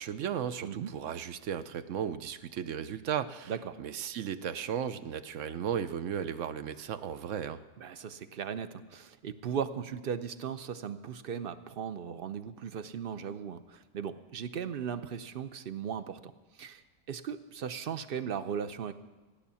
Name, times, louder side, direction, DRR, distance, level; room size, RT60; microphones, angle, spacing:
voice 1, 0.0-3.5 3.8-7.6, right 8 dB, 75° right, 12 dB, 1.0 m, -35 dB
voice 2, 3.5-3.8 7.8-16.8 17.1-18.9, right 7 dB, 55° right, 11 dB, 0.8 m, -37 dB
15.5 x 10.0 x 7.0 m, 1.2 s
omnidirectional pair, 1.3 m